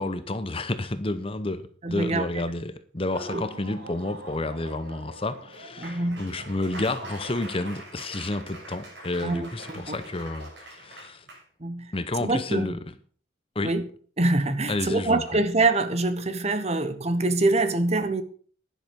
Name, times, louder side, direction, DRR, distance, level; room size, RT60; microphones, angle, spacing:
voice 1, 0.0-11.2 11.9-12.8 13.5-13.7 14.7-15.2, left 2 dB, 30° left, 0.8 m, -30 dB
voice 2, 1.8-2.4 3.3-3.4 5.8-6.2 9.2-10.0 11.6-11.9 12.2-12.7 13.6-13.8 14.2-18.2, right 2 dB, 35° right, 1.2 m, -25 dB
Laughter / Applause, 3.0-11.4, right 1 dB, 60° right, 6.6 m, -43 dB
11.0 x 11.0 x 5.4 m
head